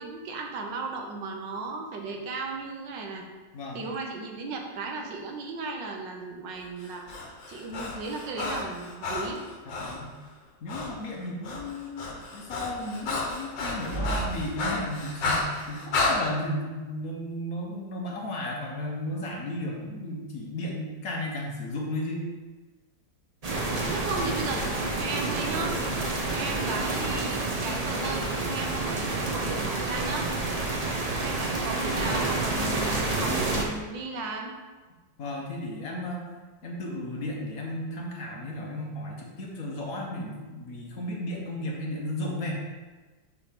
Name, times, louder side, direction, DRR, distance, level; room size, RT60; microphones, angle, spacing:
voice 1, 0.0-3.2 3.7-7.0 7.5-9.4 23.9-30.3 31.2-34.5, right 3 dB, 75° right, 2 dB, 1.5 m, -35 dB
Breathing, 6.8-10.0 10.7-10.9 11.2-16.2, left 3 dB, 80° left, 1.8 m, -32 dB
voice 2, 9.7-10.1 10.6-12.0 12.3-22.3 35.2-42.5, left 1 dB, 55° left, -1 dB, 1.3 m, -34 dB
sound 1, 13.7-15.3, right 3 dB, 15° right, 1.0 m, -36 dB
sound 2, 23.4-33.6, right 2 dB, 50° right, 0.4 m, -29 dB
6.7 x 3.3 x 5.7 m, 1.3 s
omnidirectional pair, 2.0 m